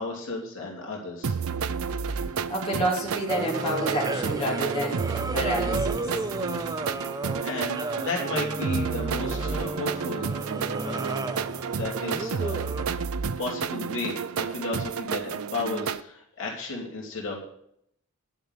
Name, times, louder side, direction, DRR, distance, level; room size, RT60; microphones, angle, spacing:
voice 1, 0.0-1.4 6.9-7.0 7.4-10.2 10.8-11.1 11.7-12.6 12.9-13.0 13.4-17.4, left 2 dB, 60° left, -2 dB, 3.1 m, -33 dB
sound 1, 1.2-16.0, right 6 dB, 65° right, 0.5 m, -31 dB
voice 2, 2.1-6.1 6.8-7.0, equal, 25° left, -5 dB, 3.3 m, -30 dB
sound 2, 3.3-12.8, right 2 dB, 15° right, 0.5 m, -33 dB
11.0 x 6.8 x 8.1 m, 0.71 s
head